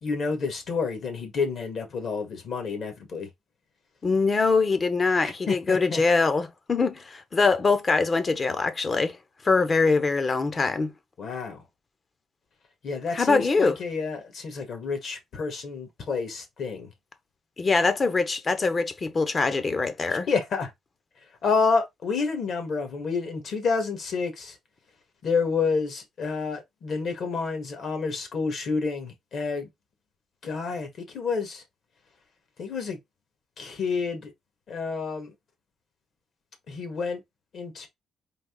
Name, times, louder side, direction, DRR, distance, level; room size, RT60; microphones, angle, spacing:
voice 1, 0.0-3.3 5.5-6.0 11.2-11.6 12.8-16.9 20.3-20.7 21.4-24.5 25.2-29.7 30.4-31.6 32.6-33.0 33.6-34.3 34.7-35.3 36.7-37.2 37.5-37.9, left 4 dB, 60° left, 1.7 m, -29 dB
voice 2, 4.0-9.2 9.4-10.9 13.1-13.8 17.6-20.3, left 4 dB, 35° left, 0.7 m, -23 dB
4.0 x 2.9 x 3.8 m
cardioid pair, 90°, 0 cm